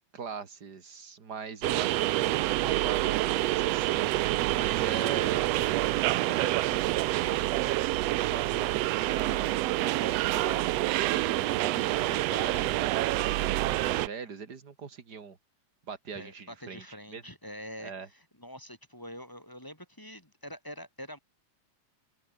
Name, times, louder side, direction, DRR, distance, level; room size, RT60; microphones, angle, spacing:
voice 1, 0.0-7.7 8.0-15.4 15.9-16.8 17.1-17.2 17.8-18.1, right 5 dB, 35° right, 2.5 m, -41 dB
sound 1, 1.6-14.1, right 17 dB, 75° right, 1.6 m, -27 dB
voice 2, 16.1-21.2, equal, 5° left, 3.2 m, -45 dB
omnidirectional pair, 3.4 m